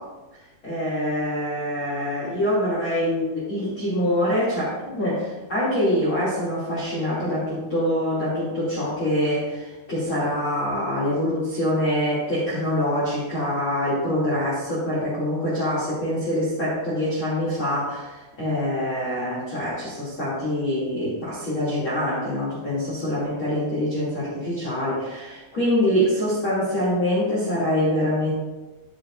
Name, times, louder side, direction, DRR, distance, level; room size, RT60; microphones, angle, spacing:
voice 1, 0.6-28.3, left 1 dB, 30° left, -7 dB, 2.8 m, -25 dB
15.5 x 7.0 x 2.6 m, 1.1 s
omnidirectional pair, 5.6 m